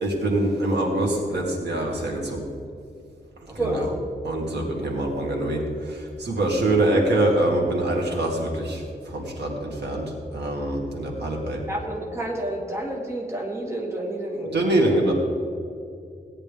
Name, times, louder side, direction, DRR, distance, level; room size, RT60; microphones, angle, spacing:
voice 1, 0.0-2.4 3.6-3.7 4.2-5.6 5.9-8.8 9.1-10.0 10.3-11.6 14.5-15.1, right 1 dB, 85° right, 0 dB, 2.1 m, -24 dB
voice 2, 3.5-4.0 11.7-15.0, right 1 dB, 15° right, -2 dB, 1.6 m, -30 dB
17.0 x 10.0 x 3.5 m, 2.4 s
wide cardioid pair, 175°, 17 cm